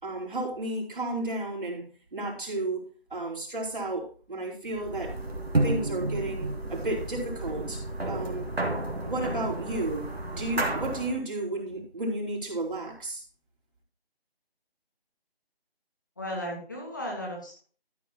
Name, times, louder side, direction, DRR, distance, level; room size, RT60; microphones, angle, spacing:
voice 1, 0.0-2.8 3.1-5.2 5.6-8.5 9.0-13.2, right 2 dB, 55° right, -3 dB, 4.3 m, -33 dB
sound 1, 4.7-11.2, right 2 dB, 75° right, 2.8 m, -31 dB
voice 2, 16.2-17.6, equal, 20° left, -2 dB, 1.5 m, -35 dB
13.5 x 8.1 x 3.0 m, 0.40 s
figure-of-eight pair, 170°, 31 cm